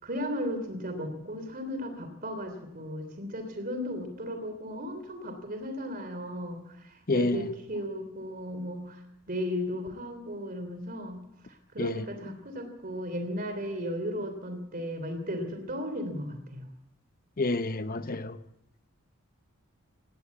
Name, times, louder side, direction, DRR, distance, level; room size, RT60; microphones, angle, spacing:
voice 1, 0.0-9.0 9.3-11.2 11.7-16.7, equal, 40° right, 3.1 m, -35 dB
voice 2, 7.1-7.5 11.8-12.1 17.4-18.4, left 2 dB, 40° left, 0.8 m, -28 dB
18.5 x 17.0 x 8.3 m
head